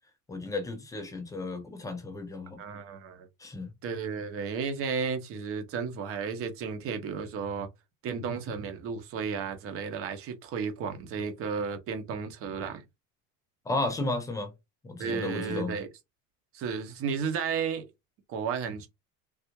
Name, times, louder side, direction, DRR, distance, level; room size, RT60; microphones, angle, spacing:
voice 1, 0.3-2.6 3.4-3.7 13.7-14.5 14.8-15.7, left 2 dB, 10° left, 0.3 m, -33 dB
voice 2, 2.6-3.3 3.8-7.7 8.0-12.8 15.0-15.9 16.5-17.9 18.3-18.9, right 6 dB, 35° right, 0.8 m, -33 dB
3.5 x 2.4 x 2.9 m
cardioid pair, 160°, 37 cm